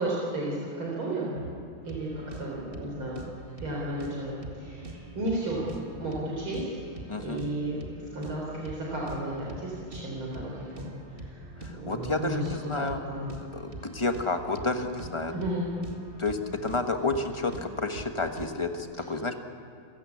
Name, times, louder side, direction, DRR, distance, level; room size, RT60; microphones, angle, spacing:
voice 1, 0.0-1.4 1.8-2.1 2.4-3.2 3.6-5.7 6.0-6.6 7.2-10.9 11.2-11.4 11.7-13.3 15.3-15.7, right 1 dB, 70° right, -3 dB, 4.8 m, -33 dB
sound 1, 1.8-18.8, right 2 dB, 25° right, 1.8 m, -44 dB
voice 2, 7.1-7.4 11.6-13.0 13.5-15.3 16.2-19.4, left 3 dB, 20° left, 6 dB, 0.9 m, -30 dB
28.0 x 15.5 x 8.5 m, 2.5 s
omnidirectional pair, 2.4 m